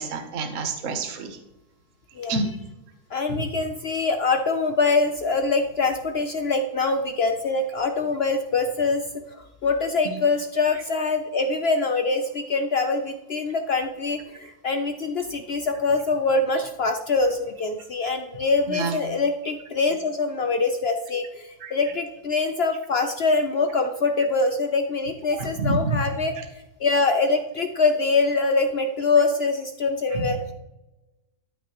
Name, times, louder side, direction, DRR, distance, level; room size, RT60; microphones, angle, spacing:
voice 1, 0.0-1.4 2.3-2.5 10.1-10.2 18.7-19.0 21.6-21.7 25.4-26.0 26.4-26.5 30.1-30.3, right 3 dB, 55° right, 6 dB, 1.3 m, -28 dB
voice 2, 3.1-26.3 26.8-30.5, left 3 dB, 70° left, 7 dB, 0.6 m, -24 dB
13.0 x 6.0 x 3.0 m, 1.0 s
omnidirectional pair, 1.8 m